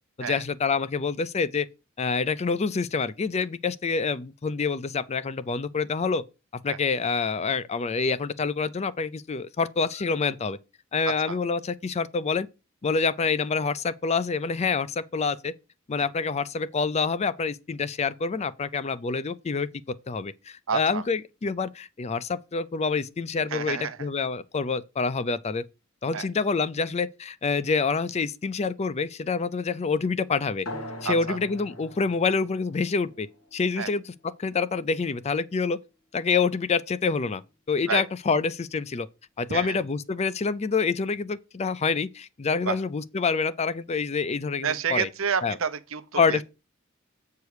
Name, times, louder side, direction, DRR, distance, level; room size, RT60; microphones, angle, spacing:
voice 1, 0.2-1.7 2.0-6.2 6.6-10.6 10.9-12.5 12.8-15.5 15.9-19.7 20.1-25.6 26.0-30.7 31.0-33.3 33.5-34.1 34.4-35.8 36.1-37.4 37.7-39.1 39.4-45.1 45.4-45.6 46.2-46.4, left 4 dB, 30° left, 0.4 m, -27 dB
voice 2, 11.1-11.4 16.0-16.1 20.7-21.0 23.5-24.0 26.1-26.3 31.0-31.4 33.8-33.9 37.9-38.0 39.5-39.8 42.6-42.8 44.6-46.4, right 6 dB, 75° right, 0.8 m, -29 dB
sound 1, 30.6-35.7, left 1 dB, 90° left, 1.8 m, -43 dB
8.2 x 4.7 x 4.9 m
head